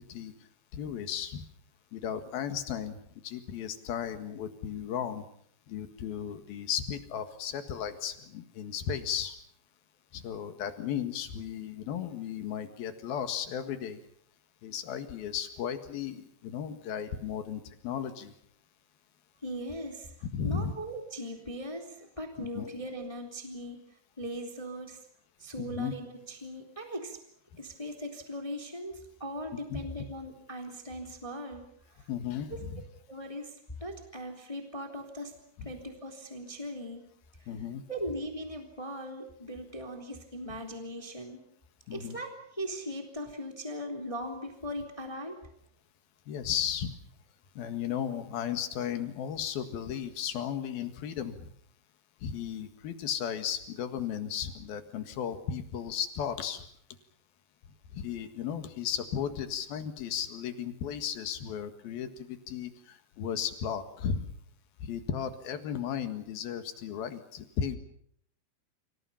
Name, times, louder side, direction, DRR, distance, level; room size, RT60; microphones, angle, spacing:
voice 1, 0.7-1.4 1.9-5.2 5.7-9.4 10.1-14.0 14.6-18.3 20.3-20.7 22.4-22.7 25.6-25.9 29.7-29.8 32.1-32.8 37.5-37.8 41.9-42.2 46.3-47.0 47.6-51.5 52.2-56.6 57.9-64.3 64.8-67.8, left 8 dB, 60° left, 8 dB, 3.1 m, -35 dB
voice 2, 19.4-20.1 20.4-23.8 24.2-25.0 25.4-27.2 27.6-31.6 32.0-32.1 32.5-32.6 33.1-35.3 35.6-37.0 37.4-37.5 37.9-41.4 41.9-45.5, equal, 10° left, 3 dB, 2.3 m, -39 dB
30.0 x 26.0 x 5.7 m, 0.67 s
omnidirectional pair, 5.6 m